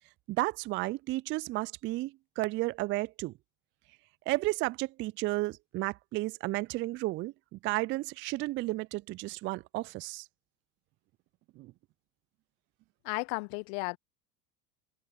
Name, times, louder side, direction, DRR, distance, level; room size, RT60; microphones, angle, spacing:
voice 1, 0.3-3.3 4.3-10.2 11.6-11.7, right 20 dB, 25° right, 0.4 m, -33 dB
voice 2, 13.0-14.0, left 35 dB, 55° left, 1.2 m, -34 dB
figure-of-eight pair, 80°, 48 cm